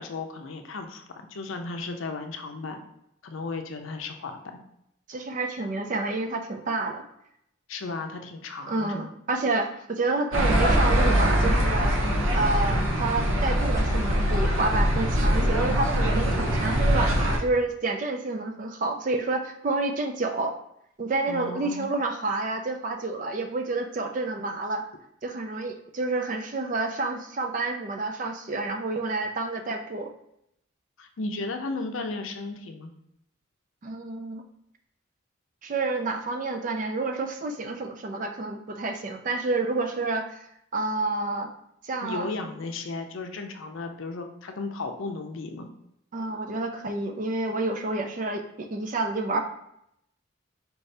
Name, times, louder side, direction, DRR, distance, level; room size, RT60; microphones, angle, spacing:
voice 1, 0.0-2.8 3.2-4.6 7.7-9.1 21.3-21.9 31.0-32.9 42.0-45.7, left 3 dB, 75° left, 5 dB, 0.5 m, -35 dB
voice 2, 5.1-7.0 8.7-12.0 12.3-20.5 21.0-24.8 25.2-30.1 33.8-34.4 35.6-40.4 40.7-41.5 41.8-42.3 46.1-49.4, right 3 dB, 40° right, 5 dB, 0.4 m, -29 dB
sound 1, 10.3-17.4, equal, 85° right, 0.7 m, -23 dB
4.6 x 2.7 x 3.2 m, 0.77 s
head